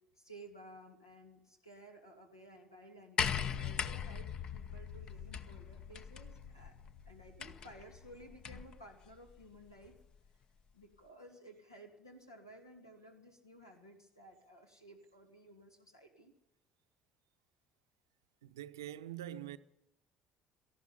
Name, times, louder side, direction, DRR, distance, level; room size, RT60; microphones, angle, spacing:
voice 1, 0.1-6.8 7.1-10.0 10.7-16.3, right 1 dB, 90° left, 2.5 m, -56 dB
sound 1, 3.2-8.8 9.9-10.0, left 7 dB, 45° left, 0.9 m, -40 dB
voice 2, 18.4-19.6, right 12 dB, 75° right, 0.7 m, -44 dB
18.0 x 14.5 x 5.7 m
figure-of-eight pair, 55°, 2 cm